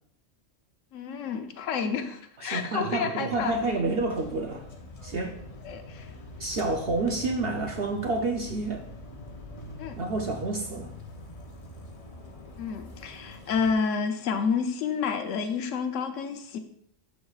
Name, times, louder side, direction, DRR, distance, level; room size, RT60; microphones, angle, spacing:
voice 1, 0.9-3.5 5.6-6.1 9.8-10.0 12.6-16.6, left 6 dB, 75° left, 6 dB, 1.1 m, -30 dB
voice 2, 2.4-4.6 5.0-5.4 6.4-8.8 9.9-10.9, right 3 dB, 55° right, 2 dB, 0.8 m, -29 dB
sound 1, 3.3-13.7, left 2 dB, 35° left, 0.8 m, -44 dB
12.0 x 4.7 x 2.4 m, 0.69 s
omnidirectional pair, 1.3 m